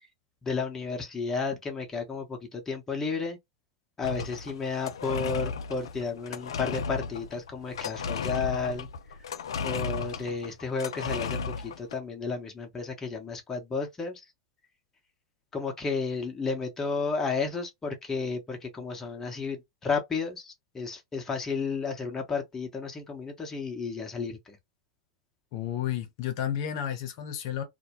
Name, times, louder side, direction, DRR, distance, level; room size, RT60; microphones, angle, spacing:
voice 1, 0.4-3.4 4.0-8.9 9.6-14.2 15.5-24.6, left 4 dB, 20° left, 0.8 m, -32 dB
sound 1, 4.0-12.0, left 5 dB, 80° left, 0.3 m, -35 dB
voice 2, 25.5-27.6, left 10 dB, 60° left, 0.7 m, -32 dB
2.2 x 2.1 x 2.9 m
hypercardioid pair, 95°, 2 cm